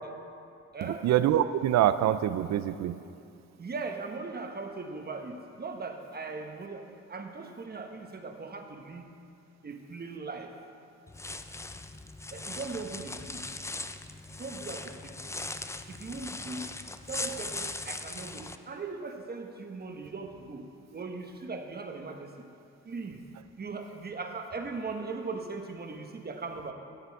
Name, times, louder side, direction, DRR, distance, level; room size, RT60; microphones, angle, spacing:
voice 1, 0.8-3.0, right 11 dB, 65° right, 13 dB, 0.5 m, -25 dB
voice 2, 3.6-9.1 9.6-10.5 12.3-13.5 14.4-15.3 15.9-16.7 17.1-20.6 20.9-22.3 22.8-23.2 23.6-26.7, right 4 dB, 30° right, 4 dB, 1.2 m, -39 dB
sound 1, 11.1-18.6, left 2 dB, 10° left, 0.4 m, -39 dB
16.0 x 6.8 x 4.7 m, 2.5 s
cardioid pair, 90°, 30 cm